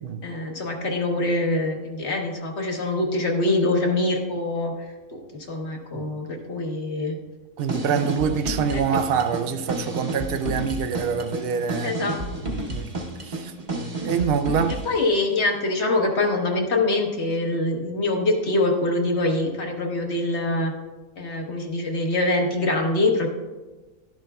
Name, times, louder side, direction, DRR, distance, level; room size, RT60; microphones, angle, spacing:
voice 1, 0.2-4.7 5.1-5.2 5.5-7.2 11.8-12.2 14.8-20.7 21.2-23.3, left 2 dB, 50° left, 1.3 m, -24 dB
sound 1, 7.6-15.0, right 1 dB, 35° right, 1.0 m, -31 dB
voice 2, 7.6-12.0 12.4-12.9 13.2-13.6 14.0-14.8, right 6 dB, 85° right, 0.5 m, -25 dB
11.5 x 11.0 x 2.3 m
omnidirectional pair, 1.6 m